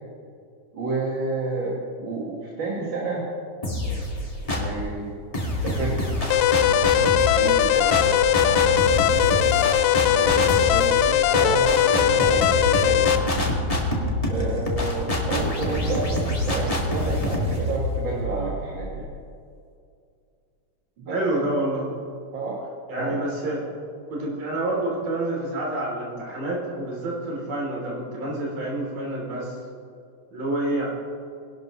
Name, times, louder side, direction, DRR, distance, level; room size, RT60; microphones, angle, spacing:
voice 1, 0.7-3.2 3.8-4.0 4.5-5.1 5.6-6.0 6.3-6.4 6.7-8.0 9.2-9.8 10.1-13.1 14.3-19.1 21.0-21.2 22.3-22.6 23.0-23.2, right 3 dB, 45° right, -5 dB, 2.0 m, -30 dB
sound 1, 3.6-4.8 5.3-19.0, left 1 dB, 25° left, 0.8 m, -26 dB
sound 2, 6.3-13.2, left 10 dB, 80° left, 1.7 m, -20 dB
voice 2, 21.1-21.9 22.9-23.6 24.1-29.5 30.3-30.9, right 1 dB, 80° right, -4 dB, 4.9 m, -28 dB
22.5 x 12.0 x 3.1 m, 2.3 s
omnidirectional pair, 3.7 m